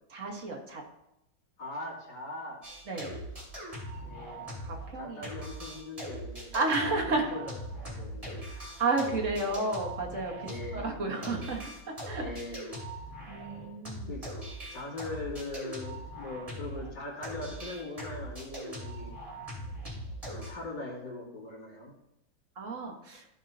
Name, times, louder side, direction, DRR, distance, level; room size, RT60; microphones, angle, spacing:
voice 1, 0.1-0.8 2.8-3.2 4.6-5.3 6.5-7.4 7.9-8.0 8.4-12.3 13.3-14.2 22.5-23.3, right 3 dB, 45° right, 1 dB, 1.5 m, -32 dB
voice 2, 1.6-2.6 4.0-4.5 5.0-6.5 7.3-7.4 7.8-8.4 10.4-11.3 12.2-12.7 14.1-14.3 14.7-19.2 20.3-21.9, left 2 dB, 70° left, -8 dB, 2.8 m, -41 dB
sound 1, 2.6-5.0 5.2-16.9 17.2-20.5, right 1 dB, 15° right, 2.9 m, -41 dB
14.5 x 5.5 x 2.7 m, 0.86 s
omnidirectional pair, 2.1 m